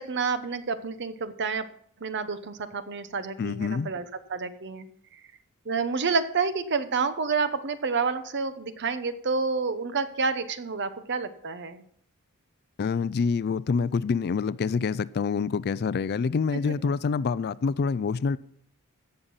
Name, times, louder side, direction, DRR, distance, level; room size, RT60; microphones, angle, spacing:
voice 1, 0.0-1.7 2.0-4.0 4.3-4.9 5.1-5.2 5.7-11.8 16.6-16.7, right 4 dB, 55° right, 0.9 m, -29 dB
voice 2, 3.4-3.9 12.8-18.4, left 5 dB, 45° left, 0.4 m, -26 dB
16.0 x 6.7 x 5.5 m
head